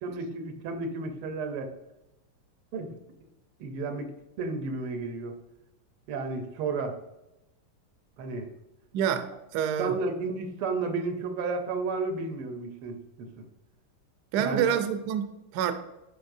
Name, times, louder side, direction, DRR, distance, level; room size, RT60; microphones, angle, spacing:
voice 1, 0.0-1.7 2.7-2.9 3.6-4.1 4.4-5.4 6.1-7.0 8.2-8.5 9.8-13.4 14.4-14.8, right 3 dB, 85° right, 6 dB, 1.7 m, -32 dB
voice 2, 8.9-9.9 14.3-15.2 15.5-15.7, right 8 dB, 70° right, 9 dB, 1.0 m, -27 dB
10.5 x 4.2 x 2.6 m, 0.94 s
omnidirectional pair, 2.3 m